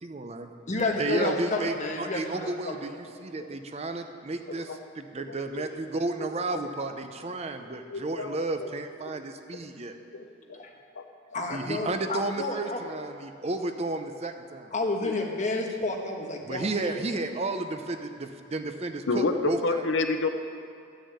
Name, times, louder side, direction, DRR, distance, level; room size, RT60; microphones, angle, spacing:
voice 1, 0.0-0.5 1.0-10.0 11.5-14.7 16.4-19.9, right 2 dB, 35° right, 7 dB, 0.6 m, -33 dB
voice 2, 0.7-2.7 10.6-10.7 11.3-12.9 14.7-17.0, left 2 dB, 40° left, 1 dB, 1.4 m, -30 dB
voice 3, 5.3-5.7 6.2-6.3 7.9-8.3 8.6-8.7 10.1-10.6 11.0-11.1 15.0-15.1 19.1-20.3, left 3 dB, 70° left, 7 dB, 0.7 m, -29 dB
11.5 x 6.4 x 8.2 m, 2.5 s
head